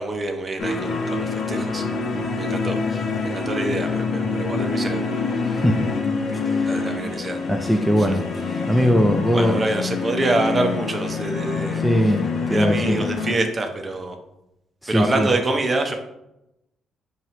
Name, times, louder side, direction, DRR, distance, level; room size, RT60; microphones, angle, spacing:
voice 1, 0.0-1.8 2.1-5.1 5.5-5.6 6.7-7.4 9.3-11.8 12.5-14.2 14.9-15.9, right 2 dB, 30° right, 4 dB, 0.7 m, -26 dB
sound 1, 0.6-13.3, left 4 dB, 60° left, 0.7 m, -26 dB
voice 2, 5.5-5.9 6.3-6.8 7.5-8.2 8.7-9.6 11.8-13.0 14.8-15.3, equal, ahead, 3 dB, 0.4 m, -20 dB
4.5 x 2.9 x 3.0 m, 0.86 s
cardioid pair, 90°, 0 cm